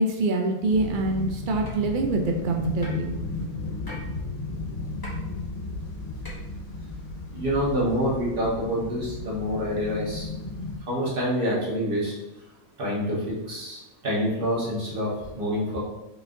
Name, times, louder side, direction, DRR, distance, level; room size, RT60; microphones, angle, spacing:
voice 1, 0.0-3.1, right 2 dB, 80° right, 2 dB, 0.4 m, -25 dB
sound 1, 0.7-10.8, left 3 dB, 85° left, 1.3 m, -34 dB
sound 2, 1.6-1.7 2.8-3.1 3.9-4.0 5.0-5.1 6.2-6.3, left 1 dB, 20° left, 0.9 m, -39 dB
voice 2, 7.3-10.3 10.9-12.1 12.8-15.8, equal, 40° right, -6 dB, 1.5 m, -27 dB
4.5 x 4.2 x 2.6 m, 0.99 s
omnidirectional pair, 1.5 m